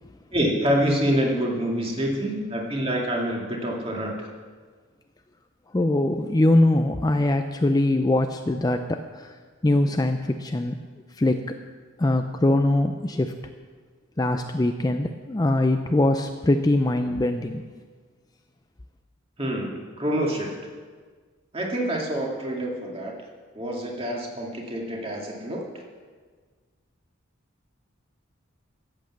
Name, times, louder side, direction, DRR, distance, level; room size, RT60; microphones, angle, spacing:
voice 1, 0.3-4.3 19.4-20.6 21.5-23.1 23.5-25.7, equal, 25° right, -1 dB, 2.2 m, -26 dB
voice 2, 5.7-9.3 9.6-10.8 11.2-11.4 12.0-13.3 14.2-17.6, left 1 dB, 20° left, 6 dB, 0.4 m, -22 dB
13.5 x 8.1 x 7.4 m, 1.5 s
head